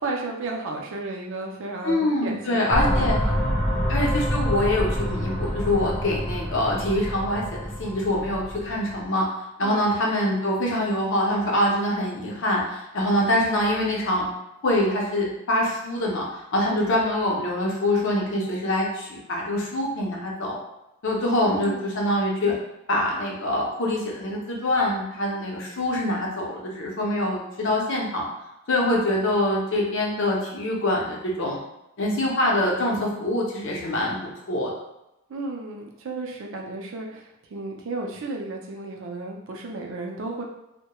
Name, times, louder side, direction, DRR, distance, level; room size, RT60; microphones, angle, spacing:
voice 1, 0.0-3.3 3.7-4.0 9.6-10.0 16.7-16.8 21.4-21.8 35.3-40.4, right 3 dB, 60° right, 1 dB, 0.4 m, -33 dB
voice 2, 1.8-3.2 3.9-9.2 9.6-14.3 14.6-16.3 16.5-20.6 21.0-22.5 22.9-28.2 28.7-31.6 32.0-34.7, left 1 dB, 60° left, -2 dB, 0.6 m, -24 dB
sound 1, 2.7-9.0, equal, 15° left, 0.6 m, -27 dB
2.2 x 2.1 x 2.9 m, 0.91 s
head